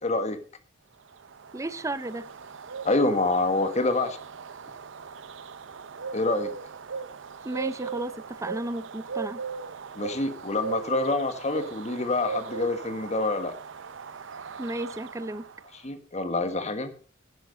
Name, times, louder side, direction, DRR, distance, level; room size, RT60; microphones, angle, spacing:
voice 1, 0.0-0.4 2.8-4.2 6.1-6.5 9.9-13.5 15.7-16.9, left 2 dB, 35° left, 9 dB, 1.5 m, -26 dB
sound 1, 1.1-15.7, right 5 dB, 70° right, 0.6 m, -38 dB
voice 2, 1.5-2.3 7.4-9.4 14.6-15.4, right 1 dB, 15° right, 16 dB, 0.6 m, -33 dB
11.5 x 10.0 x 5.2 m, 0.40 s
head